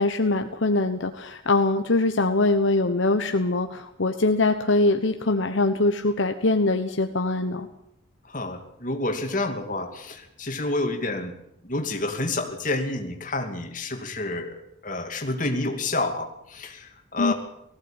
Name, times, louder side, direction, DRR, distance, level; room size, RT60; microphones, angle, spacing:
voice 1, 0.0-7.7 17.2-17.3, left 2 dB, 70° left, 6 dB, 1.1 m, -23 dB
voice 2, 8.3-11.3 11.6-14.5 14.8-17.3, left 2 dB, 40° left, 4 dB, 2.5 m, -29 dB
19.0 x 15.5 x 8.9 m, 0.80 s
head